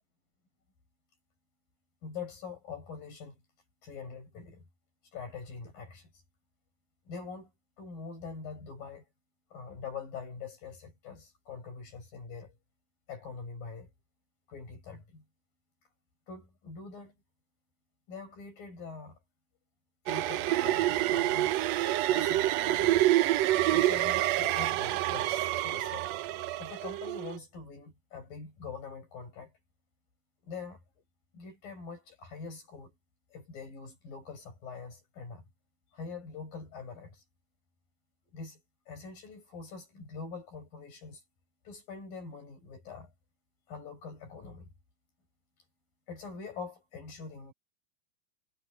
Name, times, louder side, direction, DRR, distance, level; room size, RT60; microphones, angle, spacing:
voice 1, 2.0-3.4 3.8-4.7 5.1-6.2 7.1-7.5 7.8-9.1 9.5-12.6 13.1-13.9 14.5-15.2 16.3-17.1 18.1-19.2 20.1-21.6 22.1-23.1 23.3-26.1 26.6-29.5 30.4-30.8 31.3-32.9 33.3-35.4 35.9-37.2 38.3-41.2 41.7-43.1 43.7-44.7 46.1-47.5, left 5 dB, 90° left, 9.4 m, -44 dB
sound 1, 20.1-27.4, right 15 dB, 85° right, 1.5 m, -27 dB
omnidirectional pair, 3.9 m